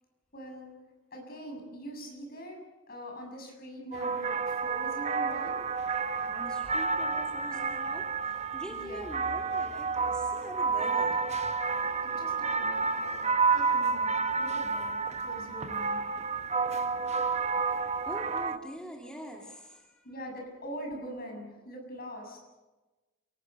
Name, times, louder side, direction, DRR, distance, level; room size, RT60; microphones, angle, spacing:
voice 1, 0.3-0.7 1.1-5.6 8.7-9.1 12.0-16.0 20.0-22.4, equal, 50° left, 2 dB, 7.0 m, -43 dB
sound 1, 3.9-18.6, right 4 dB, 35° right, 0.9 m, -30 dB
voice 2, 6.3-11.4 18.0-20.1, equal, 5° left, -1 dB, 2.8 m, -44 dB
29.0 x 18.5 x 6.8 m, 1.2 s
head